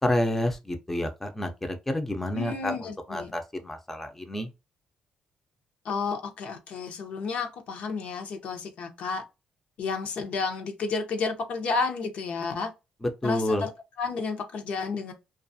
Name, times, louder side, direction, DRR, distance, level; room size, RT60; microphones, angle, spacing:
voice 1, 0.0-4.5 13.0-13.7, left 1 dB, 10° left, 0.5 m, -29 dB
voice 2, 2.3-3.3 5.8-9.2 9.8-12.7 13.2-13.7 14.0-15.1, left 4 dB, 70° left, 0.7 m, -31 dB
2.4 x 2.3 x 2.6 m
cardioid pair, 90°, 2 cm